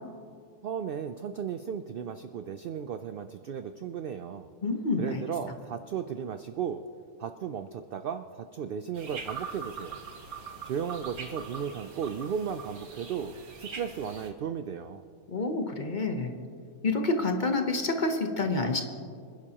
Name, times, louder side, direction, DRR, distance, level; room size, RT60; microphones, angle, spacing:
voice 1, 0.6-4.5 5.0-6.8 7.2-10.0 10.6-15.0, right 7 dB, 75° right, 9 dB, 0.5 m, -35 dB
voice 2, 4.6-5.2 15.3-16.3 16.8-18.8, left 3 dB, 35° left, 5 dB, 1.0 m, -28 dB
sound 1, 9.0-14.3, right 5 dB, 90° right, 1.8 m, -42 dB
26.0 x 11.0 x 2.9 m, 2.2 s
omnidirectional pair, 1.5 m